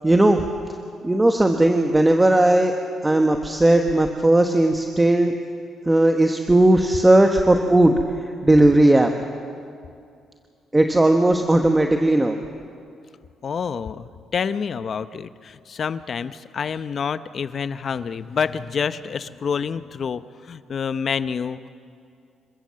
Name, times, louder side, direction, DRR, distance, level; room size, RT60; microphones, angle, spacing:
voice 1, 0.0-0.4 1.0-2.7 3.0-5.3 5.8-8.0 8.4-9.1 10.7-12.4, right 1 dB, 15° right, 4 dB, 1.2 m, -17 dB
voice 2, 13.4-21.7, left 6 dB, 50° left, 13 dB, 0.8 m, -28 dB
27.0 x 14.5 x 7.6 m, 2.4 s
cardioid pair, 90°, 0 cm